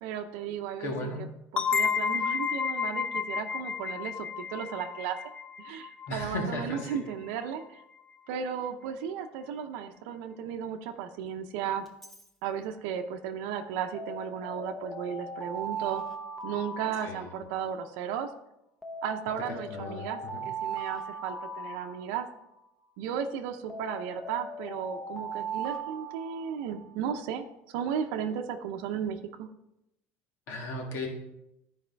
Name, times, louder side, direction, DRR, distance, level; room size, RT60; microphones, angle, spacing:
voice 1, 0.0-1.1 1.5-5.2 5.6-7.8 8.3-11.8 12.4-16.0 16.4-18.3 19.0-22.3 23.0-27.5 27.7-29.5, right 8 dB, 80° right, 5 dB, 0.7 m, -35 dB
voice 2, 0.8-1.3 6.1-7.0 17.0-17.3 19.7-20.4 30.5-31.1, left 2 dB, 50° left, 1 dB, 1.6 m, -36 dB
sound 1, 1.6-7.0, left 6 dB, 20° left, 0.4 m, -31 dB
Alarm, 11.9-12.2 13.9-17.7 18.8-22.6 23.7-26.9, right 4 dB, 5° left, 0.8 m, -39 dB
13.0 x 4.9 x 3.4 m, 0.85 s
cardioid pair, 160°, 5 cm